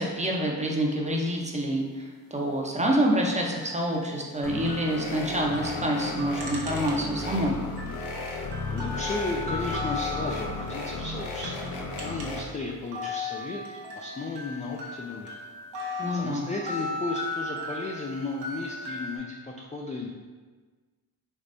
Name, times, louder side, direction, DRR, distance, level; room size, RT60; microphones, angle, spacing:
voice 1, 0.0-7.6 16.0-16.5, right 1 dB, 15° right, 0 dB, 0.6 m, -27 dB
sound 1, 2.8-7.3 7.6-12.5 12.8-19.2, left 2 dB, 70° right, 0.8 m, -37 dB
sound 2, 4.4-12.4, left 2 dB, 65° left, 0.7 m, -34 dB
voice 2, 8.7-11.6 12.0-15.4 15.9-20.1, left 3 dB, 20° left, -1 dB, 0.3 m, -34 dB
3.5 x 3.1 x 2.5 m, 1.4 s
supercardioid pair, 55°, 42 cm